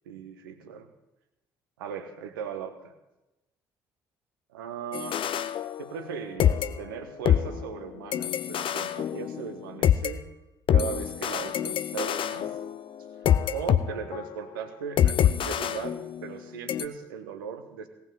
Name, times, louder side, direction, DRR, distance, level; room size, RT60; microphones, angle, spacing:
voice 1, 0.0-0.9 1.8-2.9 4.5-5.2 5.8-10.3 10.7-12.5 13.5-17.9, right 7 dB, 75° right, 7 dB, 1.2 m, -38 dB
sound 1, 4.9-6.1 6.4-10.1 10.7-13.8 14.1-14.4 15.0-16.4 16.7-16.9, left 10 dB, 50° left, 0.7 m, -26 dB
17.5 x 5.9 x 7.6 m, 0.97 s
figure-of-eight pair, 50°, 12 cm